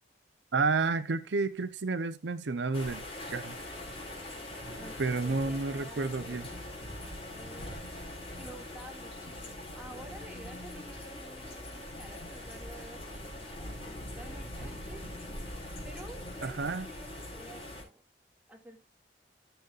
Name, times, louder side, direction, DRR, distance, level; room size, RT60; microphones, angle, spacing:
voice 1, 0.5-3.1 3.3-3.5 5.0-6.5 16.4-16.9, right 3 dB, 85° right, 0.7 m, -30 dB
sound 1, 2.7-17.8, left 1 dB, 30° left, 4.3 m, -42 dB
voice 2, 4.6-6.4 7.0-7.7 8.4-15.4 15.8-16.6 16.9-18.0 18.5-18.8, right 1 dB, 10° right, 2.1 m, -51 dB
14.5 x 7.0 x 2.4 m
head